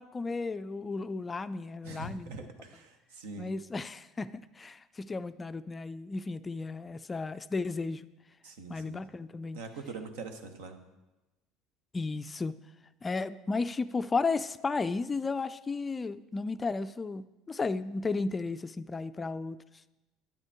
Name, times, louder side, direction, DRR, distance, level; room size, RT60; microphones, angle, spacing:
voice 1, 0.0-2.3 3.4-8.1 8.7-9.6 11.9-12.5 13.0-19.6, left 3 dB, 25° left, 13 dB, 0.3 m, -34 dB
voice 2, 1.8-3.5 8.4-9.0 9.5-10.8, right 3 dB, 70° right, 7 dB, 1.0 m, -43 dB
10.5 x 8.7 x 3.5 m, 1.0 s
figure-of-eight pair, 65°, 0 cm